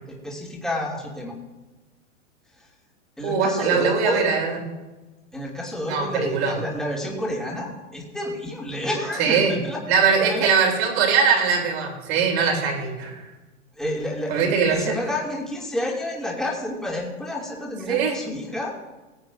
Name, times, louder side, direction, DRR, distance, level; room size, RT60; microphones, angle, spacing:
voice 1, 0.1-1.3 2.6-2.7 3.2-4.3 5.3-9.8 10.2-10.5 13.7-18.7, left 1 dB, ahead, -4 dB, 2.6 m, -29 dB
voice 2, 3.2-4.6 5.9-6.6 9.2-9.5 9.9-13.3 14.3-15.0 17.9-18.2, right 6 dB, 55° right, 1 dB, 3.6 m, -21 dB
20.0 x 8.6 x 2.7 m, 1.1 s
hypercardioid pair, 125°, 38 cm